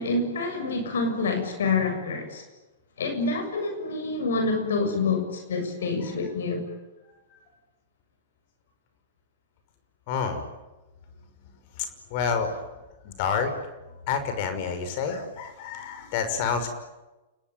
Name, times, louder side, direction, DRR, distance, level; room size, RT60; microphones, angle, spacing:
voice 1, 0.0-2.4 3.0-6.6, left 3 dB, 70° left, 6 dB, 6.9 m, -27 dB
voice 2, 10.1-10.4 11.8-12.6 13.0-13.5 14.1-16.7, left 6 dB, 50° left, 8 dB, 5.8 m, -28 dB
30.0 x 21.0 x 9.3 m, 1.1 s
figure-of-eight pair, 105°, 0 cm